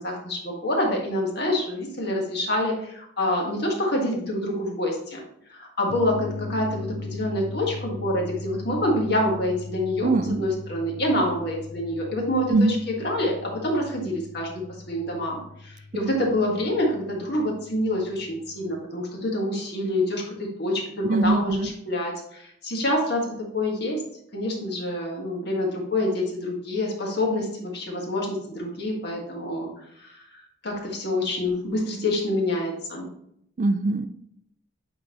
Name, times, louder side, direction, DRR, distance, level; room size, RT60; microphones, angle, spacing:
voice 1, 0.0-5.2 5.5-10.1 10.4-14.6 14.9-24.0 24.3-29.7 30.0-33.1, left 1 dB, 55° left, -1 dB, 1.6 m, -27 dB
sound 1, 5.9-18.8, left 3 dB, 80° left, 1.3 m, -39 dB
voice 2, 10.0-10.4 12.5-12.8 21.0-21.7 33.6-34.1, right 3 dB, 40° right, 11 dB, 0.3 m, -22 dB
8.7 x 4.0 x 3.0 m, 0.73 s
head